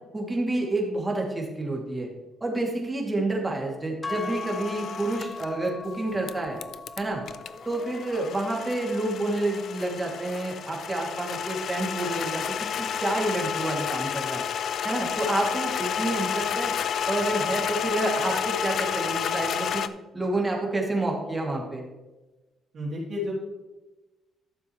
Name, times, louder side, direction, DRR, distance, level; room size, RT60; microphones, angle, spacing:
voice 1, 0.1-2.1 2.4-6.6 7.0-7.2 7.7-14.4 14.8-16.7 17.1-19.8 20.1-21.8, right 2 dB, 15° right, -1 dB, 2.6 m, -29 dB
sound 1, 4.0-12.3, left 3 dB, 20° left, 0.6 m, -42 dB
sound 2, 4.1-5.5 6.3-19.9, left 8 dB, 65° left, 0.5 m, -31 dB
voice 2, 22.7-23.4, left 2 dB, 55° right, -6 dB, 3.1 m, -31 dB
13.0 x 7.1 x 3.2 m, 1.1 s
cardioid pair, 90°, 0 cm